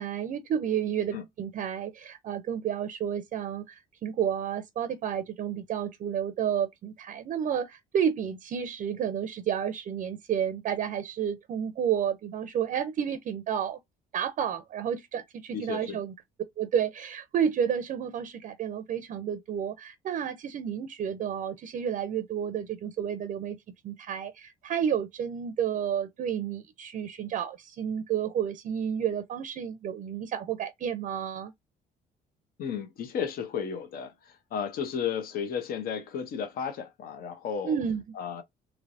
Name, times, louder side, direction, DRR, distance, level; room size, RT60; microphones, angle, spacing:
voice 1, 0.0-13.8 14.1-16.1 16.6-23.6 23.8-31.5 37.6-38.0, right 8 dB, 50° right, 0.5 m, -31 dB
voice 2, 15.5-16.0 32.6-37.8 38.1-38.4, left 7 dB, 60° left, 0.9 m, -33 dB
3.2 x 3.1 x 2.6 m
cardioid pair, 110°, 17 cm